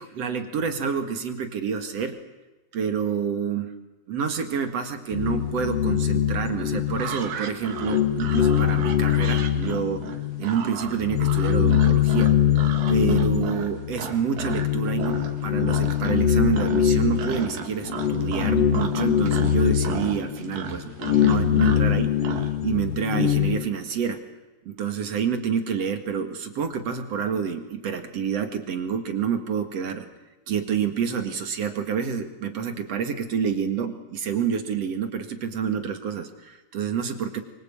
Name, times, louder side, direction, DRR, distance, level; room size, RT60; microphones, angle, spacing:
voice 1, 0.0-2.2 2.7-3.7 4.1-12.3 12.9-15.2 15.4-22.2 22.6-24.2 24.7-30.1 30.5-37.4, right 7 dB, 50° right, 8 dB, 2.6 m, -28 dB
sound 1, 5.1-7.4 7.7-10.4 10.8-23.7, left 10 dB, 55° left, 2.4 m, -23 dB
sound 2, 6.9-14.7 15.0-15.4 15.7-16.3 16.5-22.5, right 7 dB, 85° right, 3.7 m, -35 dB
25.0 x 24.0 x 8.7 m, 1.1 s
omnidirectional pair, 3.9 m